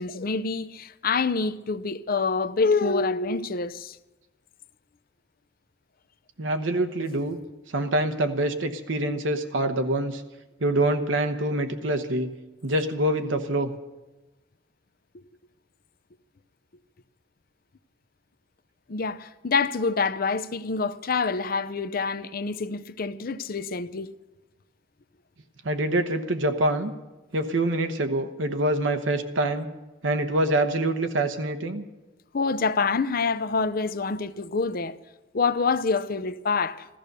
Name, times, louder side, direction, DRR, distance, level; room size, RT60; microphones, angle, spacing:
voice 1, 0.0-4.0 18.9-24.1 32.3-35.0 35.3-36.9, left 4 dB, 50° left, 0.6 m, -26 dB
voice 2, 6.4-7.4 7.7-10.2 10.6-12.3 12.6-13.7 25.6-26.9 27.3-29.7 30.0-31.8, right 1 dB, 90° right, 1.0 m, -25 dB
14.5 x 14.0 x 6.8 m
head